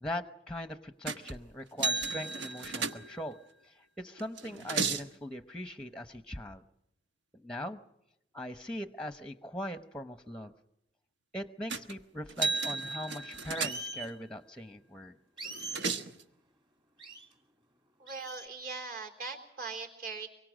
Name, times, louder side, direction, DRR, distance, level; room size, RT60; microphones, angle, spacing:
voice 1, 0.0-3.4 3.6-6.6 7.4-7.8 8.3-10.5 11.3-15.1, left 1 dB, 5° left, 9 dB, 0.8 m, -40 dB
sound 1, 1.1-1.4 1.8-3.4 4.2-5.1 11.7-11.9 12.3-14.1 15.4-16.2, right 4 dB, 80° right, 1.3 m, -34 dB
sound 2, 13.5-14.1 15.4-15.9 17.0-17.3 18.1-18.5, right 3 dB, 25° right, 2.5 m, -41 dB
voice 2, 18.0-20.3, right 4 dB, 50° right, 4 dB, 3.8 m, -40 dB
24.5 x 23.0 x 6.4 m, 0.80 s
head